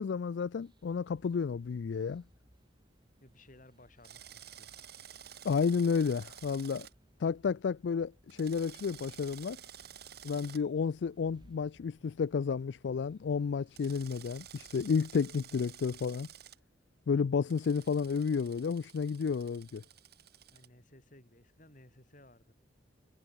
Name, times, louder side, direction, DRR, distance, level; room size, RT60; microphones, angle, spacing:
voice 1, 0.0-2.2 5.4-6.9 7.2-9.6 10.2-16.3 17.1-19.8, left 5 dB, 65° left, 0.4 m, -31 dB
sound 1, 0.6-15.0, right 1 dB, 25° right, 2.7 m, -66 dB
voice 2, 3.2-4.8 6.1-6.2 20.5-22.5, left 1 dB, 45° left, 7.0 m, -58 dB
Drill, 4.0-6.9 8.3-10.6 13.7-16.6 17.5-20.7, right 9 dB, 55° right, 3.8 m, -52 dB
head